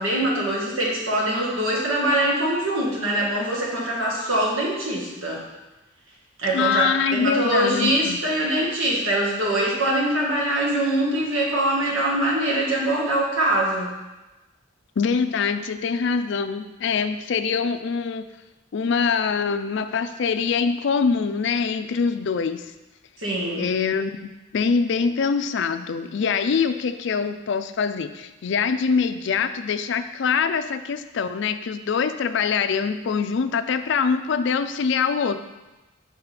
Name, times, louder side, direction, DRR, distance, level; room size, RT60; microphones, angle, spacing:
voice 1, 0.0-5.4 6.4-6.8 7.1-13.9 23.2-23.7, right 1 dB, 90° right, -3 dB, 1.8 m, -23 dB
voice 2, 6.5-8.2 15.0-18.3 18.7-22.7 23.6-35.4, left 5 dB, 60° left, 10 dB, 0.4 m, -24 dB
6.1 x 4.8 x 5.0 m, 1.0 s
head